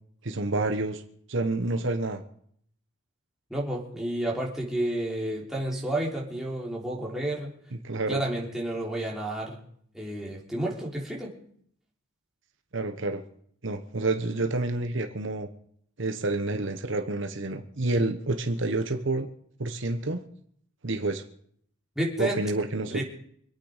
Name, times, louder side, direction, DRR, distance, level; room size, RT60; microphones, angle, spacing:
voice 1, 0.2-1.0 1.3-2.2 7.8-8.2 12.7-13.2 13.6-15.5 16.0-19.3 19.6-20.2 20.8-21.2 22.2-23.0, right 2 dB, 60° right, 6 dB, 1.1 m, -28 dB
voice 2, 3.5-7.5 8.1-9.6 9.9-11.3 21.9-22.4 22.9-23.0, right 1 dB, ahead, -3 dB, 3.4 m, -30 dB
26.0 x 9.0 x 5.1 m, 0.64 s
head